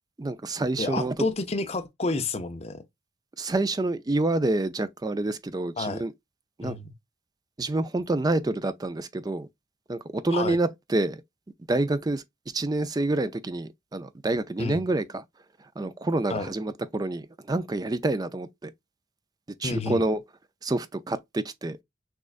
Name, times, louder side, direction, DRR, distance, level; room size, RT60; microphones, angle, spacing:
voice 1, 0.2-1.1 3.4-6.1 6.6-6.7 7.6-9.5 9.9-11.2 11.7-12.2 12.5-15.2 15.8-18.7 19.6-20.2 20.6-21.8, right 2 dB, 20° right, 0.4 m, -27 dB
voice 2, 0.8-2.8 5.8-6.0 6.6-6.9 10.3-10.6 14.6-14.8 16.3-16.5 19.6-20.0, left 3 dB, 30° left, 0.6 m, -30 dB
6.2 x 2.4 x 2.4 m
head